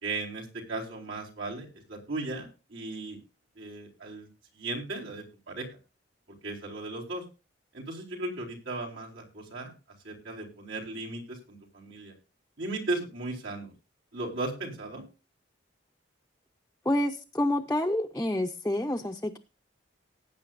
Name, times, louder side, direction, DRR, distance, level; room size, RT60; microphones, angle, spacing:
voice 1, 0.0-3.2 3.6-4.3 4.5-5.7 6.4-7.2 7.7-9.7 10.0-12.1 12.6-13.7 14.1-15.1, right 2 dB, 85° right, 4.4 m, -36 dB
voice 2, 16.8-19.4, left 1 dB, 10° left, 0.6 m, -28 dB
18.5 x 8.8 x 2.5 m
head